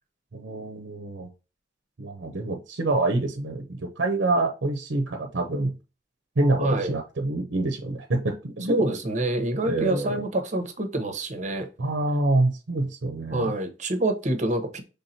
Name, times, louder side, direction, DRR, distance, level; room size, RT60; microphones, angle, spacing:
voice 1, 0.3-1.3 2.0-5.7 6.4-8.7 9.6-10.2 11.8-13.5, right 2 dB, 75° right, 0.7 m, -26 dB
voice 2, 6.6-6.9 8.7-11.7 13.3-14.8, right 1 dB, 40° right, 0.9 m, -26 dB
5.6 x 3.4 x 2.7 m
head